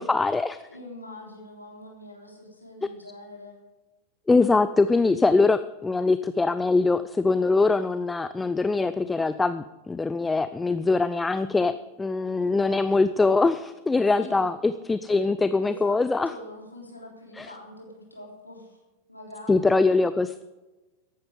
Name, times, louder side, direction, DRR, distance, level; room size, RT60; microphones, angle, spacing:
voice 1, 0.0-0.6 4.3-16.3 17.4-17.5 19.5-20.4, left 3 dB, 10° left, 13 dB, 0.5 m, -23 dB
voice 2, 0.7-3.6 14.2-14.5 15.1-15.2 15.6-16.0 16.2-18.8 19.1-19.7, left 1 dB, 85° left, -1 dB, 3.4 m, -44 dB
14.5 x 11.5 x 5.1 m, 1.1 s
figure-of-eight pair, 90°, 0 cm